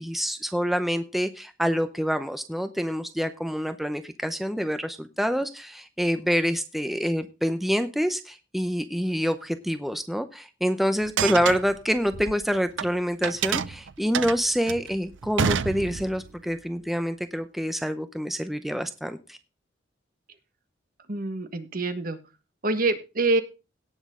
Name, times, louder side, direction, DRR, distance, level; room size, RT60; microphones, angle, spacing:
voice 1, 0.0-19.4, equal, ahead, 9 dB, 0.6 m, -27 dB
sound 1, 11.0-12.9 13.2-16.3, right 7 dB, 90° right, 0.5 m, -28 dB
voice 2, 21.1-22.2 22.6-23.4, right 2 dB, 50° right, 9 dB, 1.4 m, -25 dB
17.5 x 6.2 x 3.7 m, 0.29 s
head